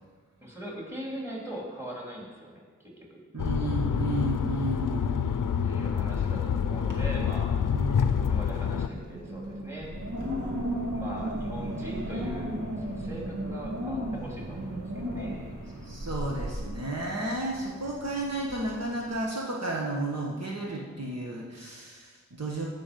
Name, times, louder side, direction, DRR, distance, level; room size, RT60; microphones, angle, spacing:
voice 1, 0.4-3.2 5.6-7.6 8.1-9.9 10.9-15.5, equal, 10° right, -3 dB, 3.5 m, -41 dB
voice 2, 3.3-5.3 7.7-8.1 15.8-22.6, right 2 dB, 55° right, -2 dB, 1.4 m, -32 dB
sound 1, 3.4-8.9, left 7 dB, 90° left, 0.6 m, -27 dB
Wind, 6.0-6.5 6.8-7.3 7.7-19.2, equal, 80° right, 2.0 m, -36 dB
15.5 x 6.2 x 5.3 m, 1.5 s
wide cardioid pair, 75°, 31 cm